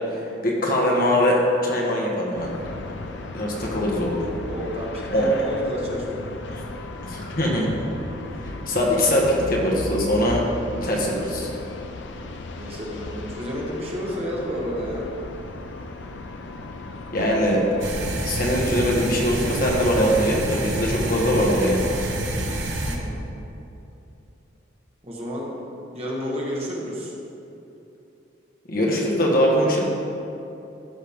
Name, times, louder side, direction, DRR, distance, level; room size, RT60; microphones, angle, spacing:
voice 1, 0.1-2.5 3.3-4.3 5.1-5.3 6.5-6.6 7.0-7.7 8.4-10.4 10.8-11.5 17.1-17.7 18.2-21.9 28.7-29.8, equal, 45° left, -2 dB, 1.5 m, -22 dB
sound 1, 2.3-17.9, left 2 dB, 70° left, 0.6 m, -36 dB
voice 2, 4.4-6.4 12.6-15.1 22.8-23.2 25.0-25.6 25.9-27.1, equal, 30° right, -4 dB, 1.5 m, -31 dB
sound 2, 17.8-23.0, right 1 dB, 70° right, 1.0 m, -28 dB
13.0 x 6.5 x 3.6 m, 2.8 s
head